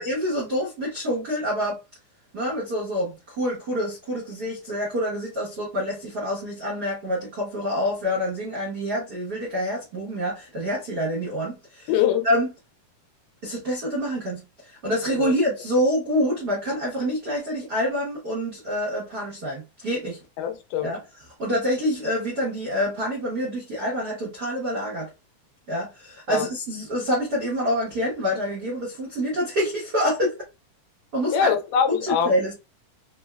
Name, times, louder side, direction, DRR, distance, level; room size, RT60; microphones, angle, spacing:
voice 1, 0.0-1.8 2.3-11.9 12.2-12.5 13.4-20.2 20.8-21.0 21.3-25.1 25.7-30.3 31.1-31.5 31.9-32.6, equal, 75° right, 0.9 m, -27 dB
voice 2, 11.9-12.3 15.1-15.3 20.4-20.9 26.3-26.5 31.3-32.3, left 8 dB, 90° left, 2.2 m, -23 dB
5.2 x 2.1 x 2.3 m
omnidirectional pair, 3.7 m